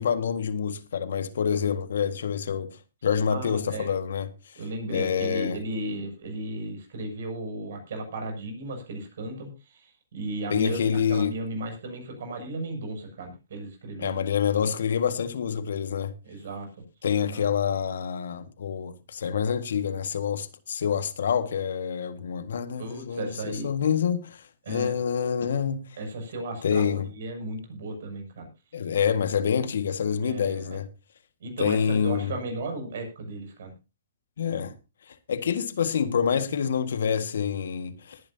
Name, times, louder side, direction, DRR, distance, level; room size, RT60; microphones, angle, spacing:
voice 1, 0.0-4.5 4.9-5.6 10.5-11.4 14.0-16.1 17.0-25.9 26.6-27.1 28.7-30.9 31.6-32.3 34.4-34.8 35.1-38.2, left 7 dB, 70° left, 1.8 m, -27 dB
voice 2, 3.3-3.9 4.6-14.2 16.2-16.7 17.3-17.5 22.8-23.7 24.7-25.0 26.0-28.5 30.2-30.8 31.4-33.7, right 2 dB, 65° right, 7.0 m, -35 dB
20.5 x 10.5 x 2.8 m
hypercardioid pair, 125°, 0 cm